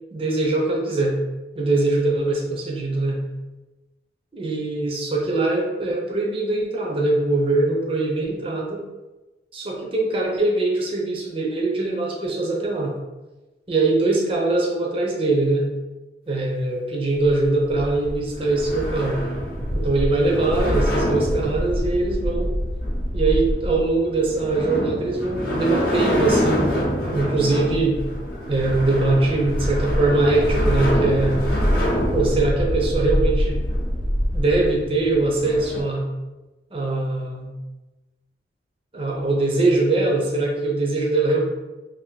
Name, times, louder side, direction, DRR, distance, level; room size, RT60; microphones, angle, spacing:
voice 1, 0.1-1.1 1.5-3.2 4.3-8.9 9.5-12.9 13.7-15.7 16.3-19.2 19.7-22.6 23.1-26.7 27.1-28.0 28.5-31.4 32.1-33.6 34.3-36.0 36.7-37.5 38.9-41.4, right 2 dB, 30° right, -1 dB, 0.6 m, -22 dB
sound 1, 17.1-35.8, equal, 55° left, 0.7 m, -25 dB
2.7 x 2.6 x 3.8 m, 1.1 s
head